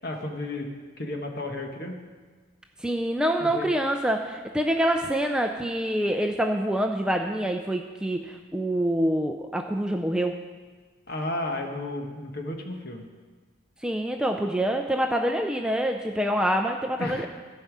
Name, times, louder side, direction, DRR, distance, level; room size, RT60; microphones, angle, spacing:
voice 1, 0.0-0.7 1.0-2.0 3.2-3.7 11.1-13.1 17.0-17.3, left 1 dB, 50° left, 3 dB, 1.3 m, -33 dB
voice 2, 2.8-10.4 13.8-17.3, right 1 dB, 5° right, 3 dB, 0.4 m, -26 dB
15.0 x 5.5 x 7.3 m, 1.4 s
head